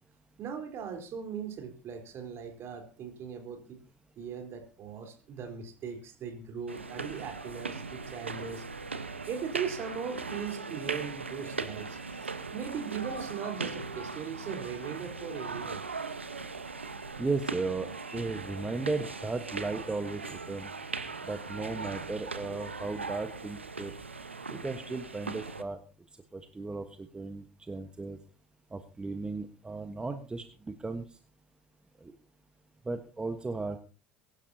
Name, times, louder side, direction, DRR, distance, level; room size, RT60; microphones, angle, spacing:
voice 1, 0.4-3.8 4.2-8.7 9.3-15.8, right 7 dB, 45° right, 5 dB, 4.0 m, -39 dB
sound 1, 6.7-25.6, right 4 dB, 85° right, 1.1 m, -39 dB
voice 2, 17.2-20.8 21.2-23.9 24.5-25.8 26.3-28.2 28.7-31.2 32.0-32.1 32.8-33.8, right 3 dB, 15° right, 7 dB, 1.3 m, -35 dB
23.5 x 11.5 x 2.8 m, 0.37 s
figure-of-eight pair, 70°, 6 cm